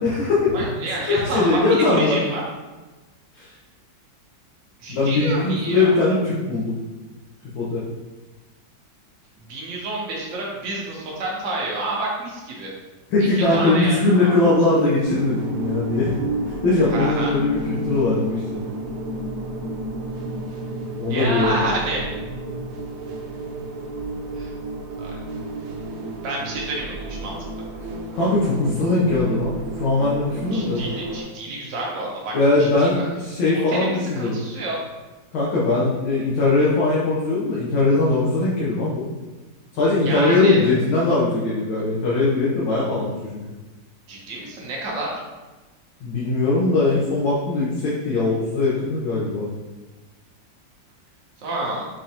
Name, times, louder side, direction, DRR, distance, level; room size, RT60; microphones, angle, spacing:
voice 1, 0.0-0.5 1.0-2.2 3.3-3.5 4.9-6.8 7.5-7.8 13.1-16.1 16.5-18.4 21.0-21.7 28.1-30.8 32.3-34.4 35.3-39.1 39.7-43.4 46.0-49.5, left 2 dB, 90° left, -7 dB, 1.6 m, -20 dB
voice 2, 0.5-2.4 4.8-6.0 9.5-12.7 13.2-14.6 16.9-17.3 21.1-22.0 24.4-24.5 25.0-25.2 26.2-27.6 30.3-33.1 33.5-34.8 40.0-40.7 44.1-45.2 51.4-51.9, right 2 dB, 50° right, -3 dB, 1.0 m, -29 dB
sound 1, 15.0-31.2, right 2 dB, 85° right, 1.3 m, -31 dB
5.2 x 2.5 x 2.8 m, 1.2 s
omnidirectional pair, 2.0 m